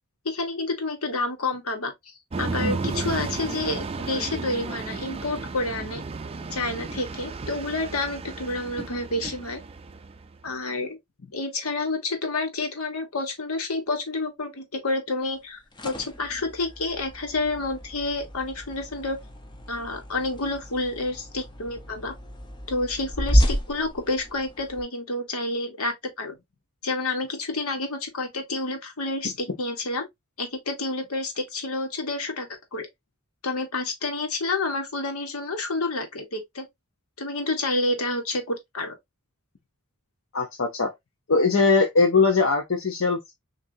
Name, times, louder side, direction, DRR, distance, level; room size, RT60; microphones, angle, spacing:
voice 1, 0.2-1.9 2.4-6.0 6.5-9.6 10.4-11.0 11.3-19.2 19.7-22.1 22.7-26.3 26.8-30.0 30.4-32.9 33.4-36.7 37.2-38.9, left 2 dB, 80° left, 1.4 m, -29 dB
sound 1, 2.3-10.3, right 3 dB, 25° right, 0.4 m, -33 dB
sound 2, 15.4-24.8, equal, 20° left, 0.7 m, -30 dB
voice 2, 40.3-40.9 41.3-43.3, left 4 dB, 65° left, 0.8 m, -21 dB
6.3 x 2.7 x 2.7 m
head